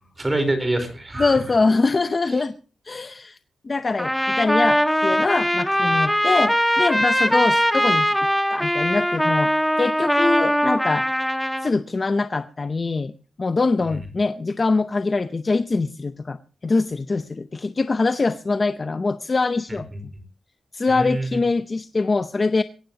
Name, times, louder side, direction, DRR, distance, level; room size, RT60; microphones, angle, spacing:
voice 1, 0.2-1.4 2.3-2.4 19.7-20.0 20.9-21.4, right 2 dB, 20° right, 8 dB, 4.3 m, -26 dB
voice 2, 1.2-2.5 2.9-3.4 3.6-8.1 8.5-9.5 9.8-11.1 11.6-13.1 13.4-20.1 20.7-22.6, left 3 dB, 30° left, 10 dB, 0.7 m, -23 dB
Trumpet, 4.0-11.7, equal, ahead, 1.1 m, -21 dB
22.0 x 17.5 x 2.9 m, 0.36 s
wide cardioid pair, 165°, 0 cm